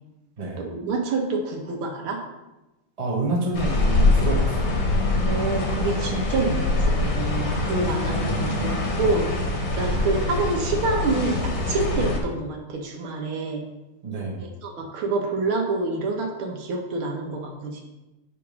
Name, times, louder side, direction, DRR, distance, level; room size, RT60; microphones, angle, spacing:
voice 1, 0.6-2.2 5.2-13.6 14.4-17.8, right 3 dB, 80° right, 2 dB, 1.9 m, -27 dB
voice 2, 3.0-4.9 8.1-8.7 9.8-10.0 14.0-14.4, right 2 dB, 25° right, -1 dB, 0.8 m, -29 dB
sound 1, 3.5-12.2, left 2 dB, 40° left, 1.2 m, -24 dB
8.3 x 3.5 x 5.2 m, 1.0 s
omnidirectional pair, 2.3 m